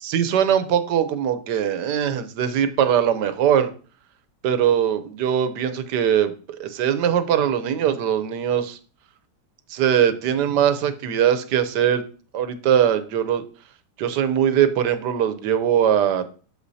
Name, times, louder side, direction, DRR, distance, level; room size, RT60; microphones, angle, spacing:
voice 1, 0.0-3.7 4.4-6.3 6.6-8.8 9.7-12.0 12.3-13.4 14.0-16.3, right 9 dB, 80° right, 11 dB, 1.3 m, -21 dB
8.3 x 6.8 x 2.7 m, 0.40 s
omnidirectional pair, 1.8 m